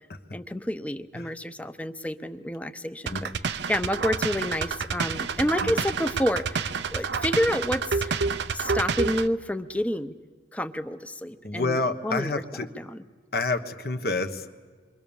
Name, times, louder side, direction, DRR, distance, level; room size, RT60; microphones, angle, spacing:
voice 1, 0.3-3.3 3.7-8.2 8.5-10.1 10.5-11.8 12.0-12.4 12.8-13.0, left 1 dB, 10° left, 10 dB, 0.8 m, -29 dB
sound 1, 3.1-9.3, right 5 dB, 75° right, 0.7 m, -28 dB
voice 2, 11.4-12.7 13.3-14.5, left 3 dB, 60° left, 7 dB, 1.3 m, -28 dB
28.0 x 23.5 x 7.1 m, 1.5 s
head